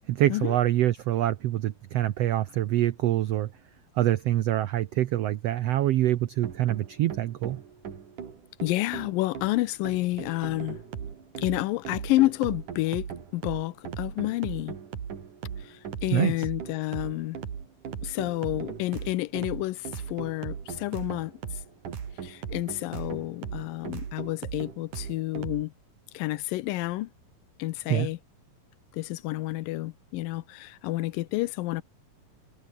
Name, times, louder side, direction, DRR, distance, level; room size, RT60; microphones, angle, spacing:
voice 1, 0.1-3.5 4.0-7.6 16.1-16.3 27.9-28.1, right 13 dB, 90° right, 1.4 m, -25 dB
sound 1, 6.4-25.6, right 7 dB, 65° right, 4.4 m, -38 dB
voice 2, 8.6-10.8 11.4-14.8 15.6-17.4 18.0-21.3 22.2-25.7 26.1-27.1 27.6-28.2 28.9-31.8, left 18 dB, 85° left, 2.4 m, -29 dB
omnidirectional pair, 4.0 m